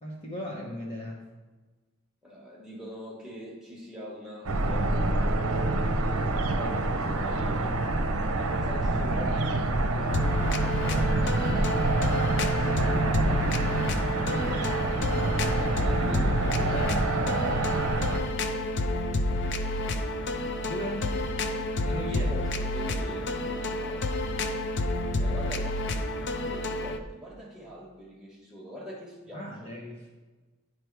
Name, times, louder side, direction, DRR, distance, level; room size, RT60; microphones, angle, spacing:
voice 1, 0.0-1.2 14.2-14.8 16.7-17.0 20.6-21.1 21.8-22.3 29.3-30.1, left 1 dB, 25° left, -3 dB, 0.9 m, -37 dB
voice 2, 2.2-5.2 5.5-7.8 8.3-13.6 15.8-16.9 22.1-24.1 25.1-25.8 26.2-29.7, equal, ahead, -5 dB, 1.4 m, -42 dB
sound 1, 4.4-18.2, right 2 dB, 75° right, 0.7 m, -27 dB
sound 2, 10.1-27.0, left 1 dB, 50° left, 0.5 m, -30 dB
9.7 x 3.4 x 4.6 m, 1.3 s
head